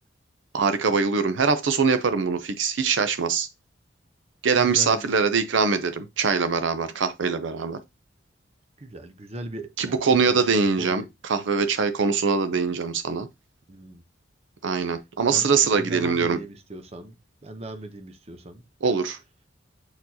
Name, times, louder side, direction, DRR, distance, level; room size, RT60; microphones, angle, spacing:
voice 1, 0.5-3.5 4.4-7.8 9.8-11.0 11.3-13.3 14.6-16.4 18.8-19.2, right 5 dB, 75° right, 0.6 m, -23 dB
voice 2, 4.6-5.2 8.8-11.1 13.7-14.0 14.8-15.0 15.3-17.1 17.4-18.6, right 1 dB, 35° right, 0.8 m, -39 dB
7.7 x 4.5 x 2.8 m
head